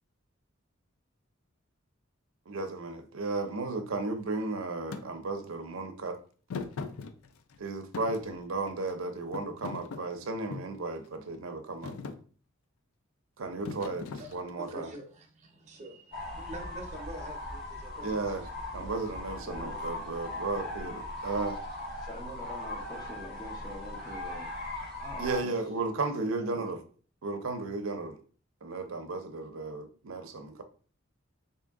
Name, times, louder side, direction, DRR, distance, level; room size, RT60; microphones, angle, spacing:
voice 1, 2.5-6.2 7.6-12.0 13.4-14.9 18.0-18.5 18.7-21.6 25.2-26.8 27.2-28.2 28.6-30.6, right 3 dB, 80° right, 0.6 m, -34 dB
Thump thud, 4.9-5.1 6.5-7.6 7.9-8.9 9.3-10.8 11.3-11.6 11.8-12.2 13.6-14.7, left 4 dB, 90° left, 0.4 m, -40 dB
voice 2, 14.6-18.1, right 1 dB, 35° right, 0.8 m, -45 dB
sound 1, 16.1-25.4, left 1 dB, 45° left, 1.7 m, -39 dB
voice 3, 22.0-24.5 25.0-25.6 26.2-26.7, left 1 dB, 20° left, 0.9 m, -45 dB
3.6 x 2.8 x 3.6 m
head